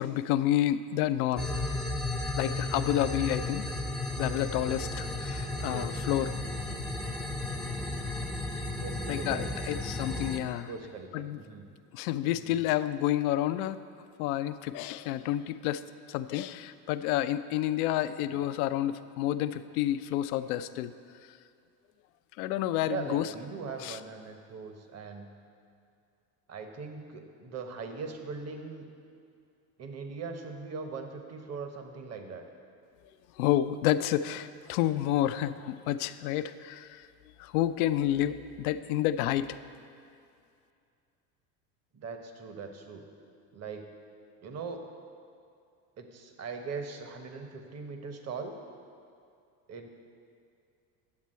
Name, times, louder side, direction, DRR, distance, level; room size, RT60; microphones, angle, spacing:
voice 1, 0.0-1.5 2.3-3.7 4.2-6.4 9.1-10.7 11.1-11.4 11.9-13.8 14.2-15.8 16.1-20.9 22.4-23.3 23.8-24.0 33.4-37.1 37.4-39.6, left 13 dB, 70° left, 13 dB, 0.5 m, -29 dB
sound 1, 1.4-10.4, left 2 dB, ahead, 0.7 m, -34 dB
voice 2, 8.5-9.5 10.7-11.7 12.2-12.5 18.2-18.4 22.8-25.3 26.5-28.8 29.8-32.5 38.2-38.3 41.9-43.0 43.5-43.9 44.4-44.8 46.0-48.5 49.7-49.9, right 4 dB, 35° right, 5 dB, 1.0 m, -40 dB
9.6 x 7.3 x 4.3 m, 2.4 s
hypercardioid pair, 75°, 47 cm